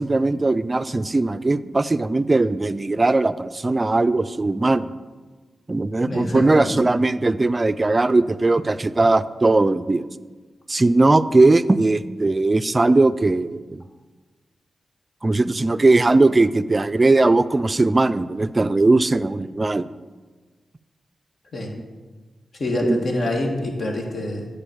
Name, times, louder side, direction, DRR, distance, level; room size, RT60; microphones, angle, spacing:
voice 1, 0.0-4.9 5.7-10.0 10.7-13.8 15.2-19.9 22.8-23.0, right 2 dB, 35° right, 15 dB, 0.4 m, -19 dB
voice 2, 6.0-6.7 21.5-21.7 22.6-24.5, left 1 dB, 60° left, 1 dB, 1.6 m, -26 dB
8.8 x 4.0 x 7.1 m, 1.4 s
cardioid pair, 50°, 0 cm